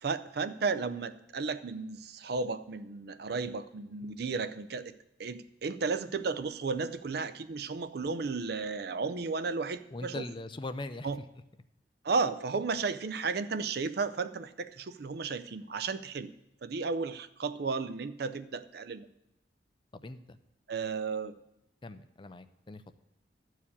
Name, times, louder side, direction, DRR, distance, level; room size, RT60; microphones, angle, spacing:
voice 1, 0.0-4.9 5.2-10.2 11.0-11.2 12.0-16.3 16.6-19.1 20.7-21.4, right 4 dB, 60° right, 13 dB, 0.5 m, -34 dB
voice 2, 9.9-11.1 19.9-20.4 21.8-22.8, left 2 dB, 25° left, 11 dB, 0.5 m, -41 dB
12.0 x 4.7 x 8.5 m, 0.85 s
head